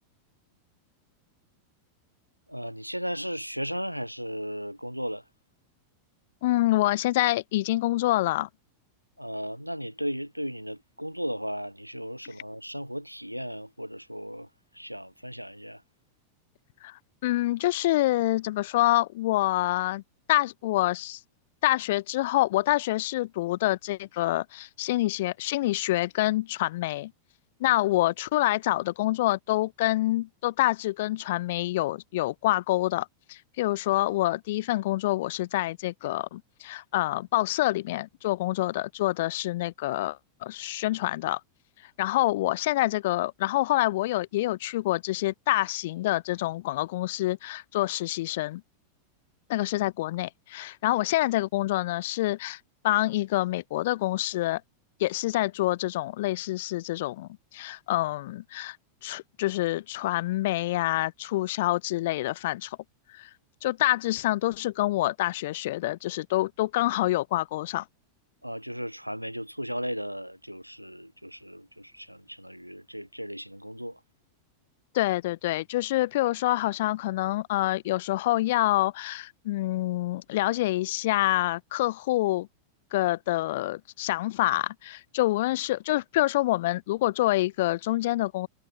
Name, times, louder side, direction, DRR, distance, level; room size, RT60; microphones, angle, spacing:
voice 1, 2.5-5.2 9.2-15.8 27.7-27.8 68.4-74.0, equal, 90° right, 4.4 m, -36 dB
voice 2, 6.4-8.5 16.8-16.9 17.2-20.0 20.3-21.2 21.6-27.1 27.6-41.4 42.0-48.6 49.5-52.6 52.8-54.6 55.0-58.8 59.0-62.8 63.1-63.3 63.6-67.8 74.9-82.5 82.9-88.5, left 17 dB, 55° left, 4.1 m, -27 dB
figure-of-eight pair, 90°, 0 cm